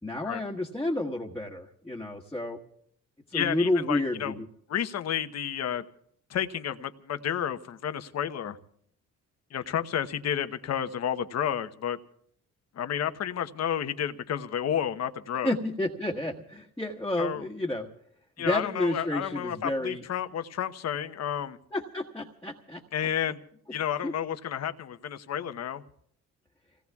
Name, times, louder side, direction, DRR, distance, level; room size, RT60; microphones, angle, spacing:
voice 1, 0.0-2.6 3.3-4.5 15.4-17.9 18.4-20.0 21.7-22.8 24.0-24.1, left 1 dB, 10° left, -3 dB, 1.5 m, -30 dB
voice 2, 3.3-4.3 4.7-5.8 6.3-8.6 9.5-12.0 12.8-15.5 17.2-17.4 18.4-21.6 22.9-23.4 23.7-25.8, left 9 dB, 60° left, 9 dB, 1.0 m, -31 dB
30.0 x 18.0 x 2.4 m, 0.68 s
cardioid pair, 90°, 30 cm